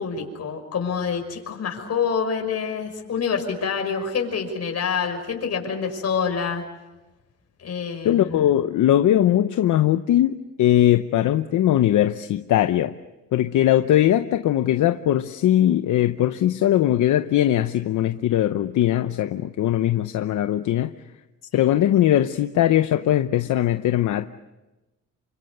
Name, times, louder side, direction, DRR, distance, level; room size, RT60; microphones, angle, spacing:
voice 1, 0.0-6.6 7.6-8.5 21.5-21.8, left 6 dB, 60° left, 6.0 m, -27 dB
voice 2, 8.0-12.9 13.3-20.9 21.5-24.3, left 12 dB, 80° left, 0.9 m, -20 dB
28.5 x 25.5 x 6.7 m
cardioid pair, 100°, 30 cm